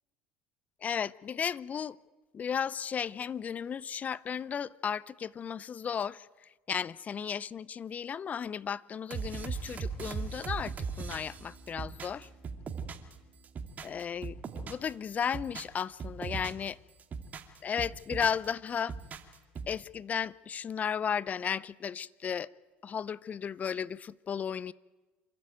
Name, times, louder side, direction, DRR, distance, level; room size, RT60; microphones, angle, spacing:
voice 1, 0.8-2.0 2.3-6.3 6.7-12.3 13.8-14.3 14.6-16.8 17.6-18.9 19.7-22.5 22.8-24.7, left 7 dB, 35° left, 0.6 m, -34 dB
sound 1, 9.1-13.1 13.4-14.9 15.2-16.7 17.0-18.5 18.8-19.8, right 5 dB, 35° right, 2.5 m, -39 dB
27.5 x 13.0 x 9.2 m
hypercardioid pair, 80°, 4 cm